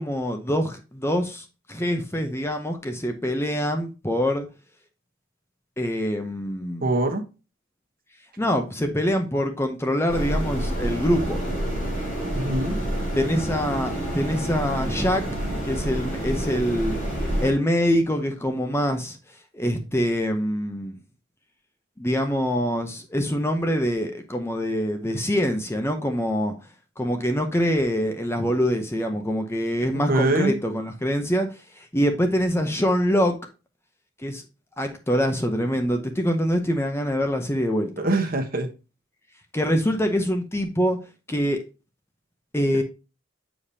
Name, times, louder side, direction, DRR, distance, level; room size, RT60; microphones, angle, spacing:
voice 1, 0.0-4.5 5.8-6.9 8.4-11.4 13.2-15.2 15.6-17.0 17.4-19.2 19.5-20.9 22.0-26.5 27.0-31.5 31.8-33.4 34.2-34.4 34.8-38.1 39.5-41.0 41.3-41.6 42.5-42.8, equal, 15° left, 0.7 m, -24 dB
voice 2, 6.8-7.2 12.3-12.8 29.9-30.5 38.0-38.7, right 2 dB, 45° right, 1.1 m, -23 dB
sound 1, 10.1-17.5, right 1 dB, 45° left, 3.9 m, -28 dB
7.1 x 5.0 x 2.7 m
head